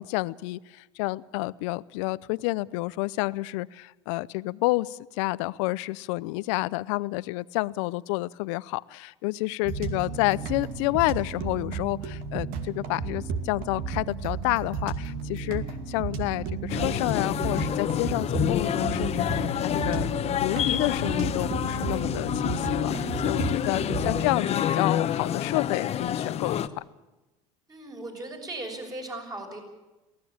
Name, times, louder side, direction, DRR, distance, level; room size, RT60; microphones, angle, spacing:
voice 1, 0.0-20.1 20.4-26.8, left 21 dB, 75° left, 19 dB, 0.6 m, -29 dB
sound 1, 9.6-24.3, right 5 dB, 65° right, 2.5 m, -33 dB
voice 2, 9.9-10.3 27.7-29.6, right 2 dB, 25° right, 2 dB, 6.8 m, -39 dB
sound 2, 16.7-26.7, left 10 dB, 40° left, 1.1 m, -28 dB
23.0 x 17.0 x 8.7 m, 1.1 s
hypercardioid pair, 85°, 16 cm